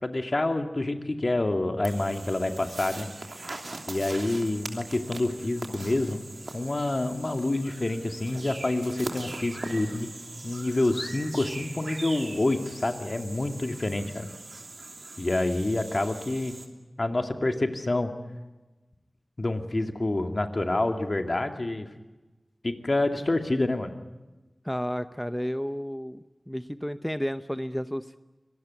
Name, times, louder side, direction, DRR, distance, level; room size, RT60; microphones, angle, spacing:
voice 1, 0.0-3.1 3.9-6.2 6.5-10.1 10.4-14.3 15.2-16.6 17.0-18.1 19.4-21.9 22.6-23.9, left 2 dB, 50° left, 6 dB, 2.4 m, -27 dB
sound 1, 1.8-16.7, right 2 dB, 70° right, 3.0 m, -41 dB
voice 2, 24.6-28.2, equal, 5° left, 11 dB, 0.8 m, -32 dB
25.0 x 18.5 x 9.6 m, 1.2 s
wide cardioid pair, 45°, 0 cm